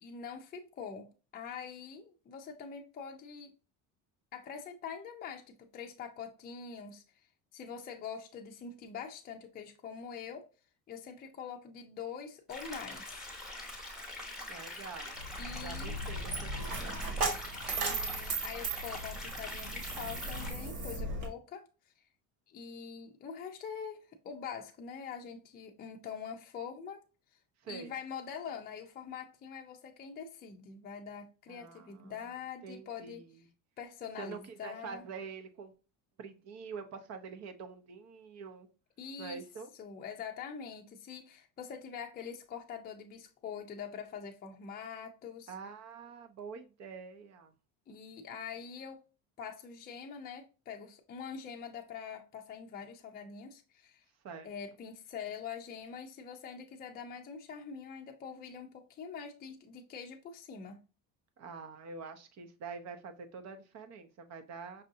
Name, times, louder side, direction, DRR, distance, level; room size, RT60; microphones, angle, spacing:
voice 1, 0.0-3.5 4.3-5.4 5.7-7.2 7.5-10.5 10.9-13.3 15.4-15.9 17.8-21.7 22.5-27.0 27.7-33.3 33.8-35.0 39.0-39.4 39.8-45.5 47.9-49.0 49.4-54.0 54.4-60.8, left 6 dB, 25° left, 0.5 m, -44 dB
sound 1, 12.5-20.5, left 1 dB, ahead, 1.0 m, -44 dB
voice 2, 14.5-15.2 15.6-17.0 27.6-27.9 31.5-32.2 32.6-33.5 34.2-35.7 36.2-38.7 39.2-39.7 45.5-47.5 54.2-54.5 61.4-64.8, right 5 dB, 45° right, 0.7 m, -46 dB
Coin (dropping), 15.2-21.3, right 3 dB, 75° right, 1.8 m, -37 dB
5.4 x 2.6 x 2.6 m
cardioid pair, 135°, 36 cm